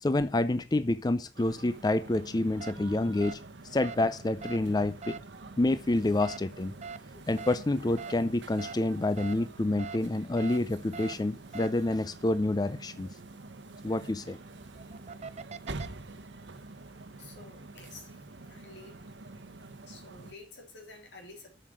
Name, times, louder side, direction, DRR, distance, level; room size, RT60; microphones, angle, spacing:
voice 1, 0.0-3.4 3.7-5.2 5.6-6.7 7.3-13.1 13.8-14.4, left 2 dB, 20° left, 0.5 m, -28 dB
sound 1, 1.3-20.3, right 3 dB, 80° right, 0.9 m, -47 dB
sound 2, 2.6-2.7 3.2-3.3 3.8-4.0 4.4-4.6 5.0-5.2 6.2-6.4 6.8-7.0 7.4-7.6 8.0-8.1 8.6-8.7 9.2-9.3 9.8-10.0 10.4-10.6 10.9-11.1 11.5-11.7 14.5-15.9, right 5 dB, 40° right, 0.6 m, -41 dB
voice 2, 17.2-19.0 19.3-19.4 19.8-21.5, left 3 dB, 85° left, 3.5 m, -50 dB
7.4 x 6.5 x 7.8 m
head